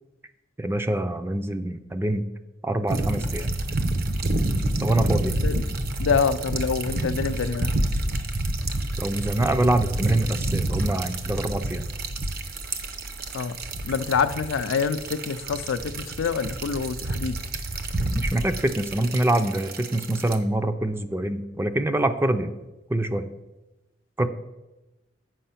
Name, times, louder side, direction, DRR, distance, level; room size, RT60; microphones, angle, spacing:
voice 1, 0.6-2.3 2.6-3.5 4.8-5.4 9.0-11.9 18.1-22.5 22.9-23.3 24.2-24.3, right 1 dB, 10° right, 0.4 m, -25 dB
sound 1, 2.9-20.4, right 2 dB, 50° right, 0.7 m, -28 dB
voice 2, 6.0-7.7 13.3-17.4, left 6 dB, 85° left, 0.4 m, -26 dB
7.7 x 5.5 x 5.7 m
head